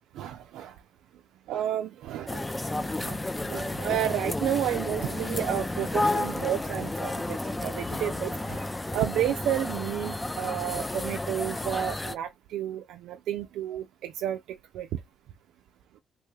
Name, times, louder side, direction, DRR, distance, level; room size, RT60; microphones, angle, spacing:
voice 1, 0.2-0.8 1.5-15.0, right 11 dB, 85° right, 0.3 m, -31 dB
sound 1, 2.3-12.1, left 2 dB, 15° left, 0.4 m, -32 dB
3.2 x 2.3 x 3.1 m
cardioid pair, 90°, 0 cm